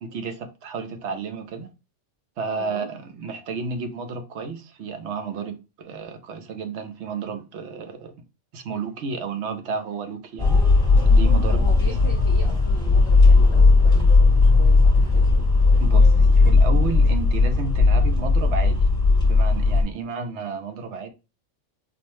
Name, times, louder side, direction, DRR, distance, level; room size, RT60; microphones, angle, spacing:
voice 1, 0.0-1.7 2.4-8.1 8.5-10.6 11.0-11.6 15.8-18.8 19.2-21.1, right 5 dB, 70° right, 0.9 m, -32 dB
voice 2, 2.6-2.9 11.5-15.5, left 2 dB, 40° left, 0.4 m, -39 dB
sound 1, 10.4-19.8, left 3 dB, 5° left, 0.9 m, -16 dB
4.2 x 2.2 x 3.0 m
omnidirectional pair, 1.3 m